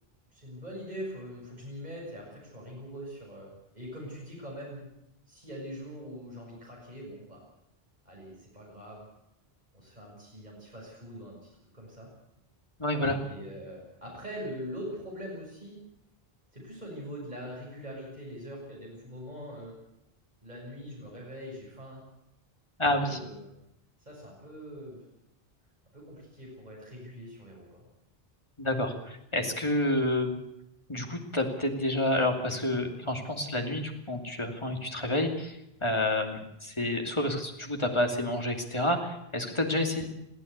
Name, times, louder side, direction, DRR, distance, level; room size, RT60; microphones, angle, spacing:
voice 1, 0.3-4.9 5.3-7.4 8.0-9.1 9.7-11.4 11.7-12.1 13.2-15.8 16.5-19.8 20.4-22.1 22.8-23.5 24.0-25.0 25.9-27.9, equal, 45° right, -3 dB, 6.5 m, -42 dB
voice 2, 12.8-13.2 22.8-23.2 28.6-30.3 30.9-40.1, left 1 dB, 30° left, 3 dB, 2.8 m, -29 dB
22.0 x 15.0 x 8.2 m, 0.83 s
omnidirectional pair, 1.0 m